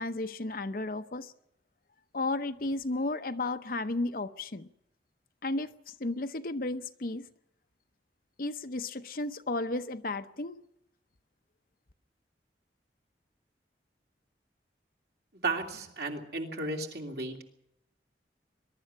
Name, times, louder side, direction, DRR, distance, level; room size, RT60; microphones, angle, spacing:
voice 1, 0.0-1.3 2.1-4.7 5.4-7.3 8.4-10.6, left 2 dB, 55° left, 9 dB, 0.8 m, -33 dB
voice 2, 15.4-17.4, right 3 dB, 60° right, 2 dB, 2.9 m, -34 dB
21.5 x 12.0 x 10.0 m, 0.81 s
head